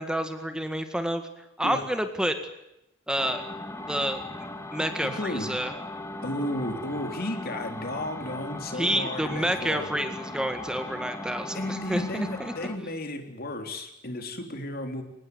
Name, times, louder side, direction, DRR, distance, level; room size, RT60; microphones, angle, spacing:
voice 1, 0.0-2.4 3.1-3.4 3.9-5.7 8.7-12.5, equal, 5° right, 7 dB, 1.9 m, -29 dB
sound 1, 3.2-12.8, left 2 dB, 15° left, 2.3 m, -38 dB
voice 2, 5.0-5.5 6.2-9.9 11.5-15.0, left 1 dB, 55° left, 6 dB, 3.7 m, -33 dB
24.5 x 19.5 x 9.6 m, 0.85 s
head